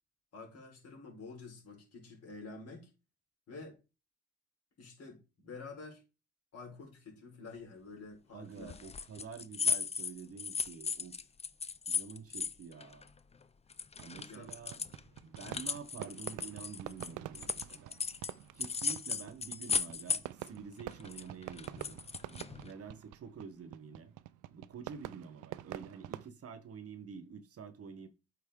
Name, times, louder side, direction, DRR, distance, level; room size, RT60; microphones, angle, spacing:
voice 1, 0.3-2.9 3.5-3.8 4.8-6.0 6.5-8.8 14.3-14.5, left 3 dB, 55° left, 4.0 m, -49 dB
voice 2, 8.3-11.2 11.9-13.1 14.0-14.9 15.2-17.9 18.5-22.0 22.3-24.1 24.5-28.1, right 6 dB, 50° right, 1.0 m, -48 dB
sound 1, 8.7-13.4 13.7-18.3 18.6-20.5 20.8-22.7, left 5 dB, 20° left, 0.5 m, -36 dB
Fireworks, 14.0-26.3, right 15 dB, 80° right, 0.5 m, -47 dB
8.3 x 4.4 x 3.7 m
cardioid pair, 90°, 30 cm